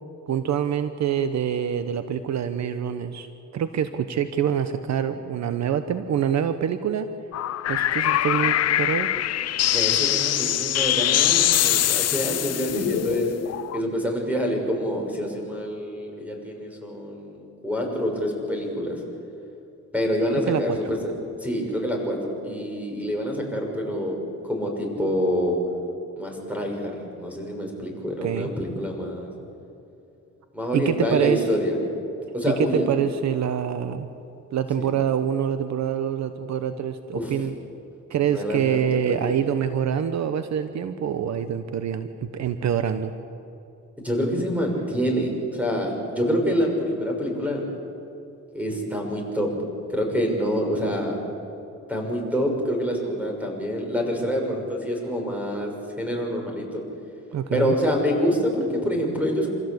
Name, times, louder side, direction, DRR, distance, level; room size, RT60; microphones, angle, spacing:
voice 1, 0.3-3.3 3.5-7.1 7.7-9.1 20.4-20.8 28.2-28.5 30.7-31.4 32.5-34.1 34.5-37.5 38.1-42.1 42.3-43.1 57.3-57.7, right 8 dB, 65° right, 10 dB, 1.1 m, -25 dB
sound 1, 7.3-13.8, left 12 dB, 55° left, 0.6 m, -23 dB
voice 2, 9.7-13.3 13.7-19.0 19.9-21.0 21.4-24.2 24.4-25.6 26.2-29.3 30.5-31.8 32.3-32.9 34.8-34.9 37.1-37.3 38.3-38.8 39.0-39.3 44.0-47.6 48.5-49.5 49.9-51.2 51.9-55.7 56.0-56.8 57.5-59.5, equal, 5° right, 1 dB, 6.6 m, -26 dB
27.0 x 16.0 x 8.2 m, 2.8 s
cardioid pair, 90°, 30 cm